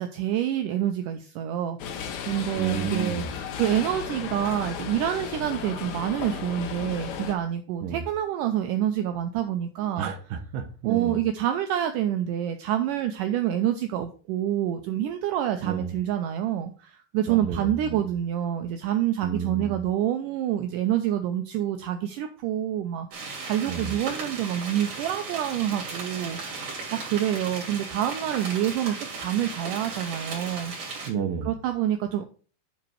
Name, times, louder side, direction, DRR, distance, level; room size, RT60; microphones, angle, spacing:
voice 1, 0.0-3.2 3.6-10.1 10.8-30.7 31.5-32.2, right 11 dB, 90° right, 6 dB, 1.8 m, -27 dB
sound 1, 1.8-7.3, left 7 dB, 70° left, 1.7 m, -35 dB
voice 2, 2.6-3.3 7.8-8.0 10.0-11.2 15.6-15.9 17.3-18.0 19.2-19.8 23.7-24.0 31.1-31.5, right 7 dB, 70° right, 7 dB, 2.5 m, -31 dB
sound 2, 23.1-31.1, right 4 dB, 55° right, 4.3 m, -36 dB
9.5 x 4.1 x 4.6 m, 0.39 s
omnidirectional pair, 4.4 m